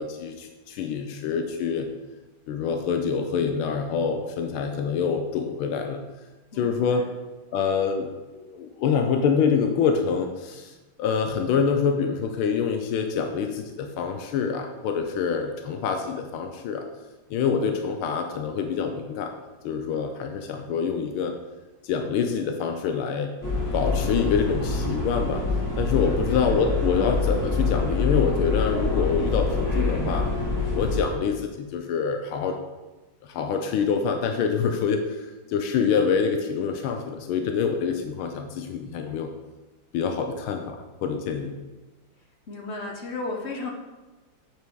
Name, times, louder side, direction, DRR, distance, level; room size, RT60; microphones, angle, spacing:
voice 1, 0.0-1.9 2.5-6.0 6.6-7.0 7.5-16.9 17.3-19.3 19.6-21.3 21.8-23.3 23.7-25.4 25.8-30.3 30.7-32.6 33.2-39.3 39.9-41.5, left 6 dB, 85° left, 5 dB, 1.5 m, -26 dB
voice 2, 6.5-7.0 26.3-26.5 42.5-43.7, left 3 dB, 45° left, 0 dB, 0.9 m, -34 dB
sound 1, 23.4-31.0, left 3 dB, 10° left, 1.5 m, -26 dB
8.2 x 4.5 x 4.7 m, 1.2 s
omnidirectional pair, 2.2 m